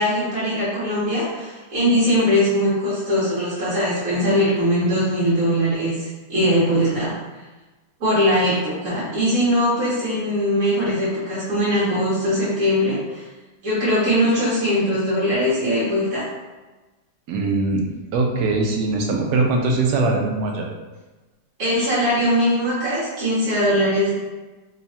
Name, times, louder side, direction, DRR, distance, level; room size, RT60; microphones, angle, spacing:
voice 1, 0.0-7.1 8.0-13.2 13.6-16.3 21.6-24.1, equal, 55° right, -9 dB, 1.3 m, -21 dB
voice 2, 17.3-17.9 18.1-20.7, right 3 dB, 70° right, 1 dB, 1.1 m, -21 dB
3.1 x 2.3 x 4.1 m, 1.2 s
omnidirectional pair, 1.9 m